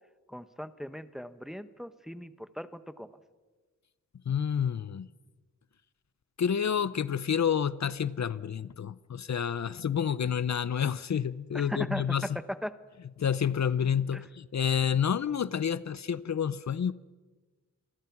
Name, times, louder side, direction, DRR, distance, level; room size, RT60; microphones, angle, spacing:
voice 1, 0.3-3.1 11.5-12.8 14.1-14.2, equal, ahead, 1.0 m, -38 dB
voice 2, 4.3-5.1 6.4-12.4 13.2-16.9, left 8 dB, 60° left, 0.6 m, -29 dB
27.5 x 23.0 x 6.0 m
wide cardioid pair, 120°, 31 cm